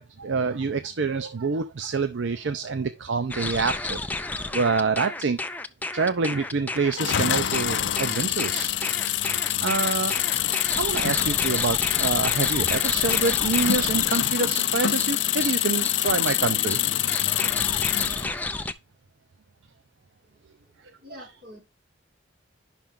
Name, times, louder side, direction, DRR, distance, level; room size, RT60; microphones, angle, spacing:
voice 1, 0.0-4.0 4.5-5.6 5.9-8.7 9.6-10.2 10.8-16.8, right 4 dB, 75° right, 0.6 m, -27 dB
sound 1, 3.3-18.7, left 2 dB, 10° left, 0.4 m, -32 dB
sound 2, 6.9-18.3, left 13 dB, 70° left, 0.5 m, -25 dB
sound 3, 8.0-13.3, equal, 15° right, 1.8 m, -48 dB
voice 2, 21.0-21.6, left 1 dB, 50° right, 5.1 m, -45 dB
10.0 x 5.9 x 3.7 m
head